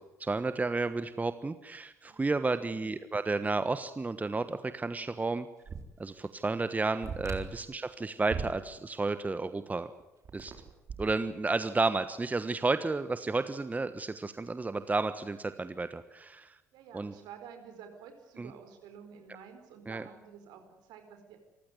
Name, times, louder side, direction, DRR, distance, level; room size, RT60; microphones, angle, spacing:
voice 1, 0.0-5.5 6.0-9.9 10.3-10.5 11.0-16.6 16.9-17.1 18.4-18.5 19.9-20.0, right 3 dB, 20° right, 12 dB, 1.3 m, -32 dB
sound 1, 5.7-5.8 6.2-6.3 7.0-7.7 8.3-8.6 10.0-11.2, right 5 dB, 45° right, 4.0 m, -38 dB
voice 2, 16.7-21.4, right 7 dB, 65° right, 6 dB, 4.5 m, -51 dB
26.5 x 15.5 x 9.6 m, 0.98 s
figure-of-eight pair, 50°, 8 cm